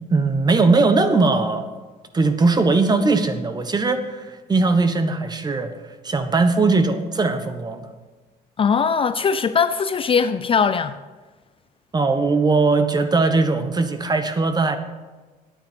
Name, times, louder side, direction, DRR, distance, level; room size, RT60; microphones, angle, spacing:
voice 1, 0.1-1.7 2.1-5.7 6.0-7.9 11.9-14.8, right 3 dB, 25° right, 1.2 m, -19 dB
voice 2, 8.6-11.0, left 6 dB, 35° left, 0.5 m, -20 dB
10.5 x 9.0 x 6.9 m
cardioid pair, 110°, 17 cm